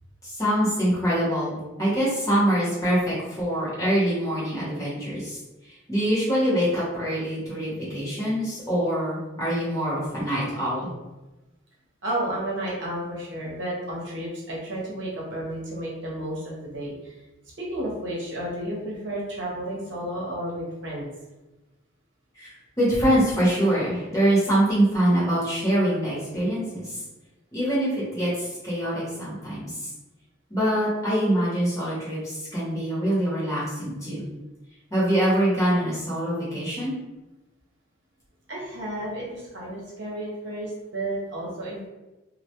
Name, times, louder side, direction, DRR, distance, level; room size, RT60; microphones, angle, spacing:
voice 1, 0.2-5.4 5.9-10.9 22.4-22.5 22.8-27.0 27.5-29.7 30.5-34.2 34.9-36.9, right 1 dB, 15° left, -9 dB, 0.8 m, -24 dB
voice 2, 12.0-17.2 17.6-21.1 38.5-41.9, right 1 dB, 65° right, -5 dB, 0.8 m, -32 dB
2.1 x 2.1 x 2.8 m, 1.0 s
head